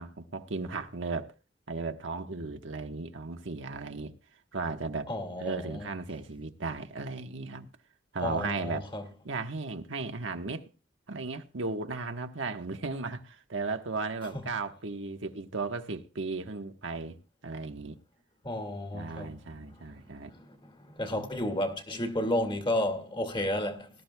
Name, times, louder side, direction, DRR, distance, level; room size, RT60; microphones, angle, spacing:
voice 1, 0.0-1.3 1.7-4.1 4.5-5.1 5.4-7.7 8.1-8.9 9.2-10.7 11.1-17.2 17.4-18.0 18.9-20.3 21.1-21.3, right 3 dB, 80° right, 1.2 m, -35 dB
voice 2, 5.1-5.8 8.2-9.0 18.4-19.4 20.4-20.6 20.9-23.9, left 1 dB, 25° left, 2.0 m, -32 dB
19.0 x 12.5 x 2.3 m
head